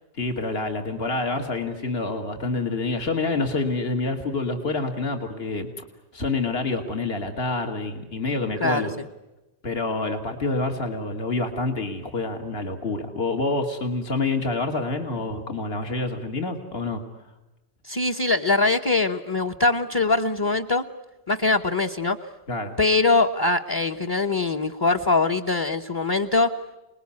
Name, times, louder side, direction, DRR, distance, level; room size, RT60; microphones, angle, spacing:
voice 1, 0.2-5.7 6.1-8.9 9.6-17.0 22.5-22.7, left 3 dB, 65° left, 5 dB, 2.5 m, -27 dB
voice 2, 17.8-20.9 21.3-22.2 22.8-26.5, left 3 dB, 25° left, 1 dB, 0.9 m, -22 dB
28.0 x 20.5 x 9.7 m, 1.0 s
omnidirectional pair, 1.1 m